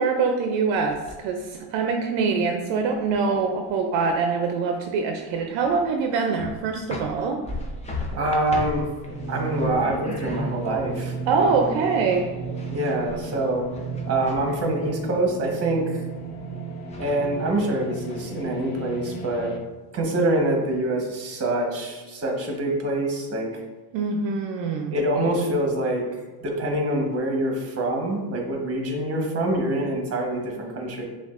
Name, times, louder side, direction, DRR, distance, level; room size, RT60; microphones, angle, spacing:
voice 1, 0.0-7.4 11.3-12.3 23.9-24.9, right 4 dB, 70° right, 3 dB, 0.6 m, -24 dB
sound 1, 0.7-1.5 1.9-4.5 4.7-4.8 5.3-6.1 6.4-14.9 16.5-16.6 16.9-17.7 18.1-18.7, left 2 dB, 15° left, 0.6 m, -38 dB
voice 2, 8.1-8.9 9.3-11.7 12.7-13.7 14.1-16.0 17.0-19.5 19.9-23.5 24.9-26.0 26.4-31.0, right 1 dB, 30° right, 1 dB, 1.1 m, -25 dB
sound 2, 9.0-19.6, right 3 dB, 60° left, 0.8 m, -34 dB
6.8 x 2.5 x 2.4 m, 1.3 s
cardioid pair, 115°, 47 cm